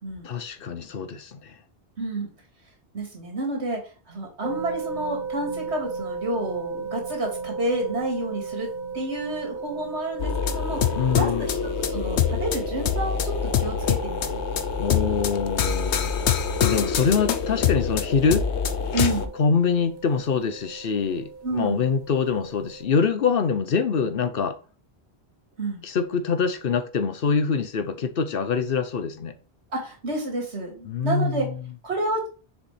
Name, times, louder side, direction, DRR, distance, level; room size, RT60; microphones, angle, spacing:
voice 1, 0.2-1.6 10.9-11.5 14.8-18.5 19.4-24.6 25.8-29.4 30.8-31.7, left 5 dB, 60° left, 0.9 m, -25 dB
voice 2, 2.0-2.3 2.9-3.8 4.1-8.7 8.9-10.8 11.1-14.4 18.9-19.3 21.4-21.8 25.6-25.8 29.7-31.5 31.8-32.3, right 2 dB, 85° right, 2.6 m, -30 dB
sound 1, 4.4-22.8, right 4 dB, 45° right, 0.9 m, -36 dB
sound 2, 10.2-19.3, left 7 dB, 85° left, 1.0 m, -25 dB
6.9 x 4.9 x 3.3 m
omnidirectional pair, 1.1 m